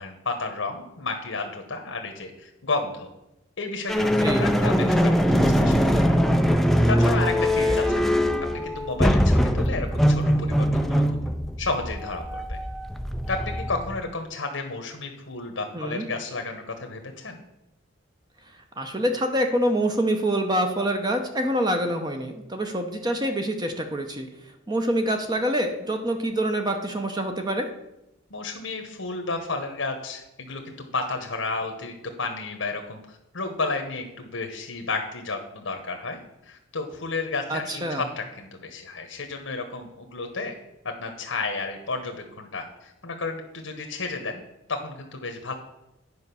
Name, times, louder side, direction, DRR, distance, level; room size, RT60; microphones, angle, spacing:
voice 1, 0.0-3.1 3.6-6.2 6.9-8.0 8.5-11.2 11.6-12.6 13.3-17.4 28.3-40.5 40.8-44.4 44.7-45.5, left 3 dB, 75° left, 4 dB, 1.2 m, -32 dB
sound 1, 3.9-14.0, equal, ahead, 0.5 m, -22 dB
voice 2, 4.2-4.5 7.6-7.8 15.7-16.1 18.8-24.3 24.7-27.7 37.5-38.0, right 1 dB, 20° right, 5 dB, 0.8 m, -26 dB
9.7 x 5.2 x 6.9 m, 0.90 s
head